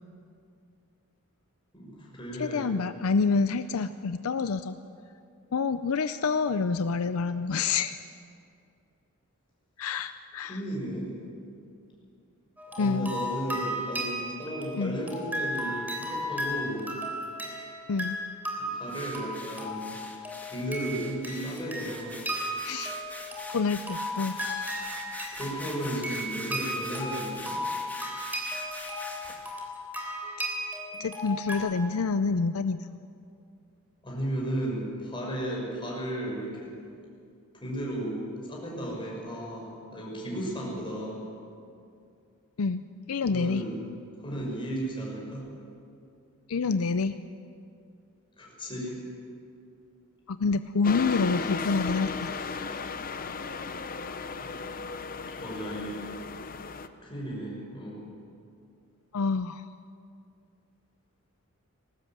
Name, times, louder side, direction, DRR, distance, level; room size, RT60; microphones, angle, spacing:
voice 1, 1.7-2.7 10.5-11.1 12.8-16.9 18.7-20.0 20.4-22.2 25.3-27.6 34.0-36.7 37.5-38.2 38.5-41.2 43.3-43.8 44.2-45.5 48.4-49.0 54.4-54.5 55.4-56.3 57.0-58.0, right 1 dB, 25° left, -3 dB, 6.1 m, -34 dB
voice 2, 2.4-4.8 5.5-8.0 9.8-10.6 12.8-13.1 14.8-15.0 17.9-18.2 22.6-23.0 23.5-24.4 28.9-29.0 31.0-33.0 42.6-43.6 46.5-47.2 50.3-52.3 59.1-59.6, left 4 dB, 70° left, 11 dB, 0.5 m, -27 dB
sound 1, 12.6-31.6, equal, 10° right, 3.6 m, -35 dB
sound 2, 18.9-29.5, left 1 dB, 10° left, 2.3 m, -44 dB
sound 3, 50.8-56.9, left 4 dB, 40° left, 0.8 m, -35 dB
20.5 x 18.0 x 7.4 m, 2.5 s
head